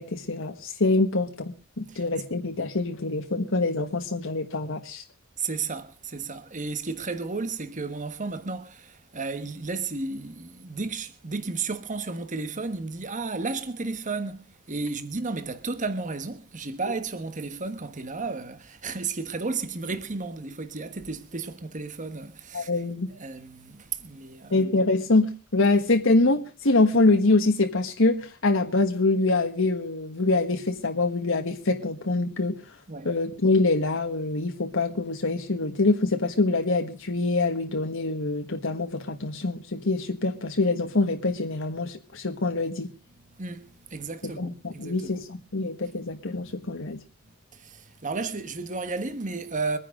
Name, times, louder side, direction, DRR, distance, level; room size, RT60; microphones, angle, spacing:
voice 1, 0.0-5.0 22.5-23.1 24.5-32.6 33.0-42.9 44.4-47.0, left 2 dB, 65° left, 1.5 m, -25 dB
voice 2, 1.9-2.2 5.4-22.8 23.1-24.6 32.9-33.1 43.3-45.2 47.5-49.8, right 4 dB, 35° right, 1.3 m, -33 dB
24.5 x 10.0 x 3.8 m
head